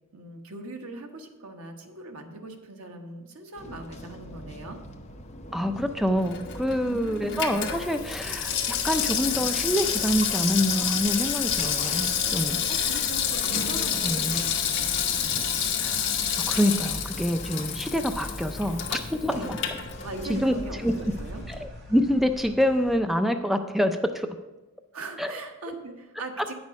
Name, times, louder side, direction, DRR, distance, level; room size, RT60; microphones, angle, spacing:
voice 1, 0.1-4.8 6.8-7.6 12.4-15.5 19.3-19.6 20.0-21.4 24.9-26.5, right 2 dB, 85° right, 4 dB, 1.2 m, -40 dB
sound 1, 3.5-21.7, left 1 dB, 30° left, 0.8 m, -41 dB
voice 2, 5.5-13.1 14.0-14.6 15.8-16.0 16.5-19.6 20.3-20.5 20.8-20.9 21.5-24.3 25.2-25.4, equal, ahead, 7 dB, 0.3 m, -26 dB
Water tap faucet / Sink (filling or washing), 6.2-20.5 20.8-20.9, left 8 dB, 55° left, 1.1 m, -28 dB
sound 2, 16.2-22.9, equal, 50° right, 2.3 m, -46 dB
9.4 x 6.2 x 5.2 m, 1.1 s
head